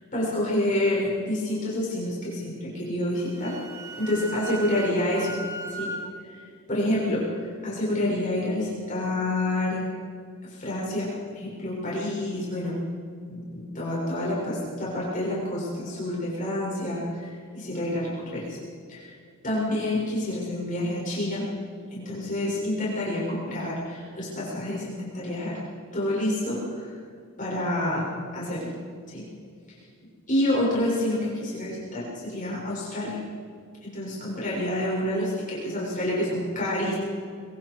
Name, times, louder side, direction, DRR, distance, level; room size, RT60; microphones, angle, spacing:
voice 1, 0.1-3.5 4.0-5.3 5.7-5.9 6.2-6.4 6.7-9.8 10.4-12.8 13.3-18.6 18.9-19.1 19.4-21.4 21.9-25.6 25.9-27.0 27.4-28.1 28.3-28.7 29.1-29.2 30.3-33.2 33.8-36.9, left 1 dB, 35° left, -6 dB, 6.8 m, -28 dB
Wind instrument woodwind instrument, 3.2-6.1, right 2 dB, 15° right, 2.2 m, -37 dB
25.0 x 24.0 x 4.9 m, 2.2 s
head